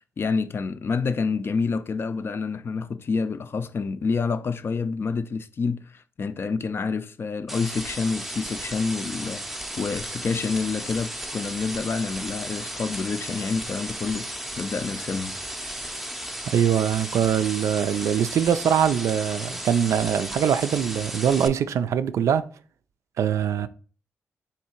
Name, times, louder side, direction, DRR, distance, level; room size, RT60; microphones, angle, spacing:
voice 1, 0.2-15.4, left 4 dB, 50° left, 0.4 m, -28 dB
sound 1, 7.5-21.5, right 1 dB, 5° right, 0.5 m, -35 dB
voice 2, 16.5-22.4 23.2-23.7, right 8 dB, 75° right, 0.3 m, -23 dB
3.8 x 2.7 x 4.3 m
cardioid pair, 60°, 5 cm